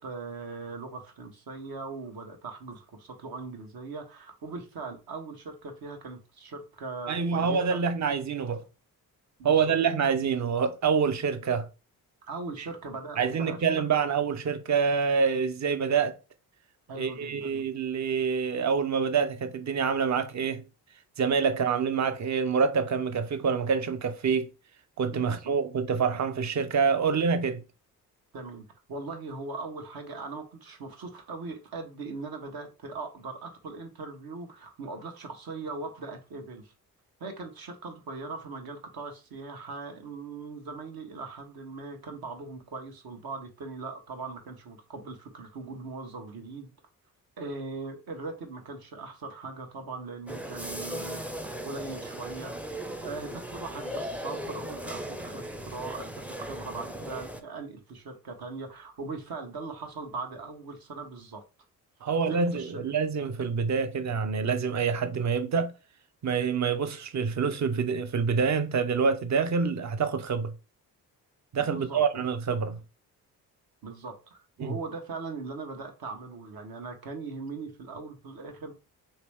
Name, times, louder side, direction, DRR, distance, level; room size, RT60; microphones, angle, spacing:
voice 1, 0.0-7.8 9.4-9.7 12.2-13.6 16.9-17.6 25.1-25.5 28.3-36.7 37.2-46.7 47.4-51.2 51.6-52.5 53.0-61.4 62.3-62.7 71.7-72.2 73.8-78.7, right 3 dB, 60° right, 1.1 m, -40 dB
voice 2, 7.1-8.6 9.4-11.7 12.6-12.7 13.2-16.2 16.9-20.6 21.2-24.5 25.0-27.6 62.0-65.7 66.2-70.5 71.5-72.8 74.6-74.7, right 6 dB, 45° right, 0.7 m, -26 dB
sound 1, 50.3-57.4, equal, 5° right, 0.5 m, -37 dB
3.2 x 2.9 x 3.4 m
supercardioid pair, 55°, 40 cm